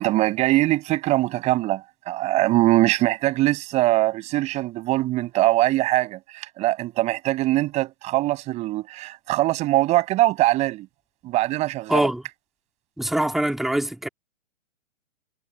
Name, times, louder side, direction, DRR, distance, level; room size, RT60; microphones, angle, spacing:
voice 1, 0.0-10.9 11.2-12.1, right 17 dB, 15° right, 7.2 m, -22 dB
voice 2, 11.9-12.2 13.0-14.1, right 1 dB, ahead, 1.9 m, -23 dB
hypercardioid pair, 165°, 38 cm